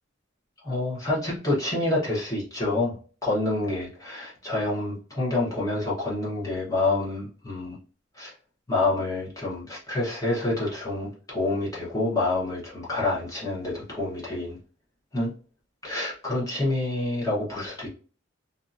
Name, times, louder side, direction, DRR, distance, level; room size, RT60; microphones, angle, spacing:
voice 1, 0.6-2.9 3.2-7.8 8.2-8.3 8.7-14.6 15.1-15.3 15.8-17.9, left 2 dB, 20° left, -6 dB, 1.0 m, -27 dB
2.7 x 2.4 x 2.5 m, 0.39 s
head